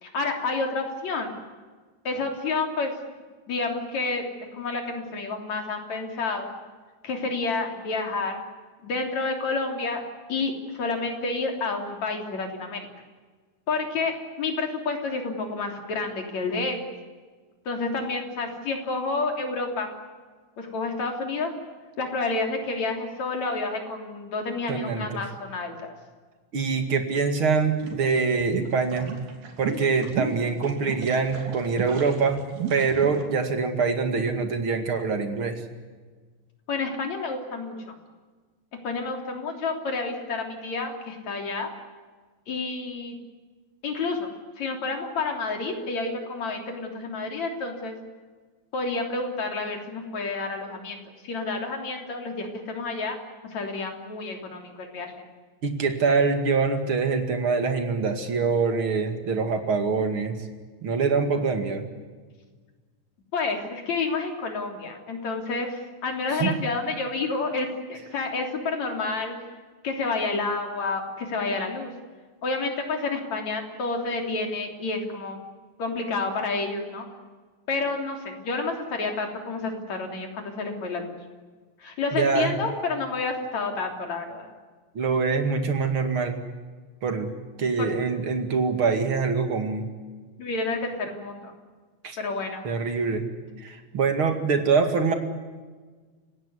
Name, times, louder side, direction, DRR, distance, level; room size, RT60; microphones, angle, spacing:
voice 1, 0.0-1.3 2.0-2.9 3.5-4.2 4.5-6.5 7.0-8.4 8.8-10.0 10.3-12.9 13.7-16.8 17.7-20.0 20.6-21.5 22.0-25.8 36.7-37.9 38.8-41.7 42.5-43.1 43.8-44.3 44.6-47.9 48.7-53.2 53.5-55.2 63.3-69.4 69.8-71.9 72.4-75.4 75.8-77.1 77.7-81.1 81.8-84.5 87.8-87.9 90.4-91.5 92.2-92.6, left 3 dB, 50° left, 3 dB, 4.4 m, -29 dB
voice 2, 24.7-25.2 26.5-29.1 29.6-32.4 32.7-35.6 55.6-60.4 60.8-61.8 66.3-66.6 82.1-82.6 84.9-86.4 87.0-87.3 87.6-89.8 92.0-92.2 92.6-93.2 93.6-95.1, right 5 dB, 40° right, 6 dB, 2.6 m, -24 dB
sound 1, 27.8-33.2, right 7 dB, 75° right, 4.7 m, -34 dB
30.0 x 17.0 x 9.5 m, 1.4 s
omnidirectional pair, 4.3 m